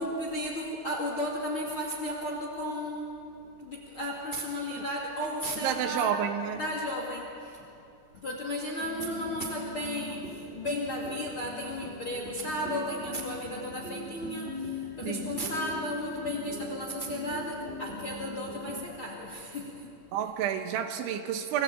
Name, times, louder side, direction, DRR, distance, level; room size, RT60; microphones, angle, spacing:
voice 1, 0.0-6.2 6.5-7.6 8.1-19.9, equal, 40° left, -1 dB, 2.0 m, -34 dB
voice 2, 5.6-6.6 15.1-15.2 20.1-21.6, right 9 dB, 75° right, 6 dB, 3.1 m, -30 dB
sound 1, 8.8-18.8, left 2 dB, 45° right, 0.8 m, -40 dB
27.5 x 17.0 x 8.4 m, 2.7 s
omnidirectional pair, 5.9 m